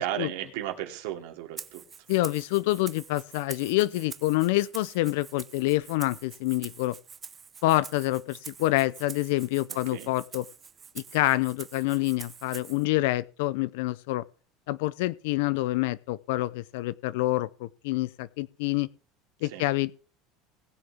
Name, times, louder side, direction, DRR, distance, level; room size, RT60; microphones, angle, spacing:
voice 1, 0.0-1.8 9.9-10.1 19.4-19.6, right 12 dB, 80° right, 2.7 m, -34 dB
Rattle (instrument), 1.6-12.8, right 6 dB, 25° right, 0.7 m, -46 dB
voice 2, 2.1-7.0 7.6-10.4 11.1-14.2 14.7-18.9 19.4-19.9, left 18 dB, 80° left, 0.5 m, -27 dB
20.0 x 6.8 x 3.5 m
supercardioid pair, 140°, 0 cm